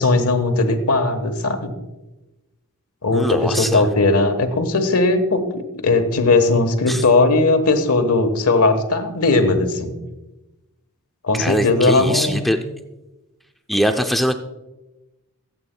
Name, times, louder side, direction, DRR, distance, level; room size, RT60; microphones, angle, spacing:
voice 1, 0.0-1.7 3.0-10.0 11.2-12.5, left 3 dB, 75° left, 7 dB, 1.2 m, -18 dB
voice 2, 3.1-3.8 6.9-7.0 11.3-12.6 13.7-14.4, equal, ahead, 5 dB, 0.4 m, -22 dB
23.5 x 8.4 x 2.2 m, 1.0 s
head